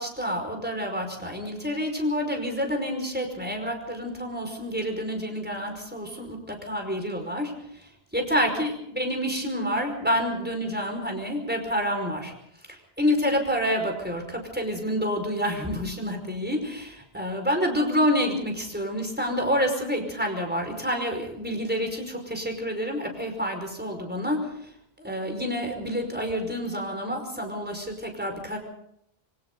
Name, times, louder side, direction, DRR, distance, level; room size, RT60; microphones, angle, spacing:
voice 1, 0.0-7.5 7.8-12.3 12.7-24.7 25.0-28.6, equal, 10° right, 3 dB, 5.3 m, -28 dB
26.5 x 25.0 x 4.0 m, 0.72 s
omnidirectional pair, 1.1 m